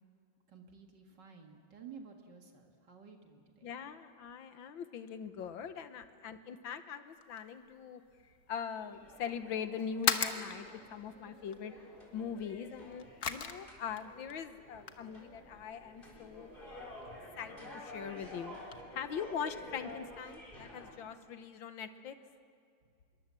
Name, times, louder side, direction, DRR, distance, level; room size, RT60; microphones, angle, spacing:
voice 1, 0.5-3.7 17.0-17.1, right 6 dB, 65° right, 3 dB, 2.5 m, -53 dB
voice 2, 3.6-8.0 8.5-11.7 12.1-16.5 17.4-18.6 18.9-22.2, left 7 dB, 80° left, 10 dB, 1.8 m, -42 dB
sound 1, 7.0-18.8, left 6 dB, 55° left, 1.6 m, -42 dB
sound 2, 8.8-20.9, left 1 dB, 25° left, 4.4 m, -51 dB
26.0 x 23.0 x 7.6 m, 2.4 s
omnidirectional pair, 2.1 m